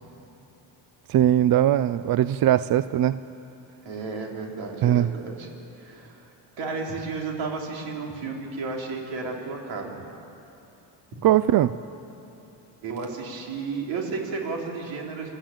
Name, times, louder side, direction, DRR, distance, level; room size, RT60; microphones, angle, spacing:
voice 1, 1.1-3.2 4.8-5.1 11.2-11.7, right 12 dB, 55° right, 14 dB, 0.5 m, -20 dB
voice 2, 3.8-5.5 5.8-6.3 6.6-10.0 12.8-15.3, right 4 dB, 85° right, 0 dB, 3.8 m, -33 dB
27.5 x 13.0 x 8.9 m, 2.9 s
cardioid pair, 105°, 44 cm